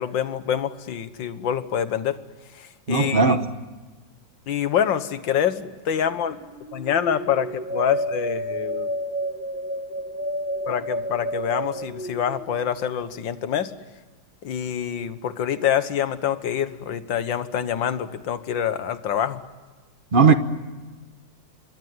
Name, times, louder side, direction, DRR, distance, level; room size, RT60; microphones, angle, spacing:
voice 1, 0.0-2.2 2.5-3.4 4.5-6.4 6.7-8.9 10.7-13.7 14.4-19.4, left 9 dB, 75° left, 12 dB, 1.9 m, -26 dB
voice 2, 2.9-3.4 20.1-20.4, right 5 dB, 30° right, 10 dB, 1.1 m, -17 dB
sound 1, 6.3-12.8, equal, 5° right, 1.9 m, -30 dB
26.0 x 22.0 x 9.6 m, 1.3 s
omnidirectional pair, 2.1 m